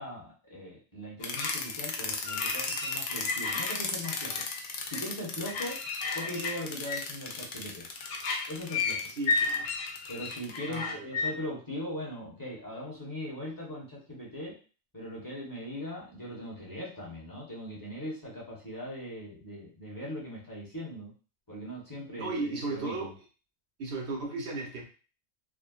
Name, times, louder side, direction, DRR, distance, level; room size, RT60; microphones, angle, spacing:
voice 1, 0.0-4.4 4.9-5.8 6.1-7.9 8.5-9.0 10.1-14.6 14.9-21.1 21.5-23.1, equal, 20° left, -6 dB, 1.2 m, -40 dB
sound 1, 1.2-11.3, left 4 dB, 60° left, 0.6 m, -32 dB
voice 2, 9.1-9.8 10.7-11.4 22.2-23.1 23.8-24.8, right 3 dB, 75° right, 0 dB, 1.1 m, -35 dB
3.5 x 2.3 x 2.4 m, 0.36 s
omnidirectional pair, 1.1 m